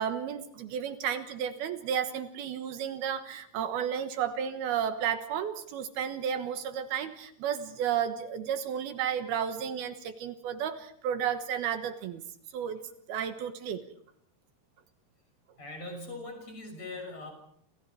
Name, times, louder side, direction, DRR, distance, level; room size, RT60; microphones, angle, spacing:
voice 1, 0.0-12.2 12.5-12.8 13.1-13.8, right 8 dB, 75° right, 9 dB, 3.1 m, -32 dB
voice 2, 15.6-17.3, left 2 dB, 40° left, 4 dB, 7.4 m, -41 dB
29.5 x 28.0 x 4.8 m, 0.65 s
omnidirectional pair, 4.7 m